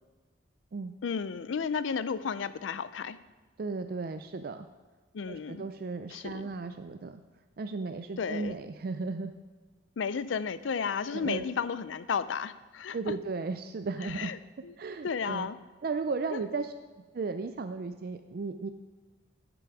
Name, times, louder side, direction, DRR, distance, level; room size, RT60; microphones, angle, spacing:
voice 1, 1.0-3.2 5.1-5.6 6.1-6.5 8.2-8.6 10.0-13.0 14.1-14.4 14.6-14.7 15.0-15.6 16.3-16.4, left 6 dB, 85° left, 14 dB, 0.4 m, -33 dB
voice 2, 3.6-4.7 5.3-7.2 7.6-9.3 11.1-11.5 12.9-14.4 14.8-15.5 15.8-16.7 17.1-18.7, right 4 dB, 50° right, 8 dB, 0.4 m, -35 dB
11.5 x 6.1 x 4.7 m, 1.3 s
head